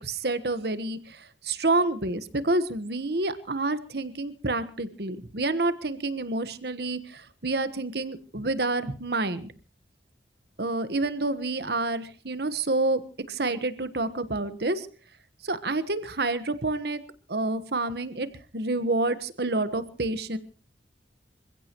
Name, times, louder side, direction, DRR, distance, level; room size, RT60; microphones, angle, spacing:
voice 1, 0.0-9.5 10.6-13.0 13.3-14.9 15.4-17.0 17.3-18.3 18.5-20.4, right 2 dB, 60° right, 12 dB, 1.3 m, -28 dB
27.0 x 16.0 x 3.1 m, 0.39 s
head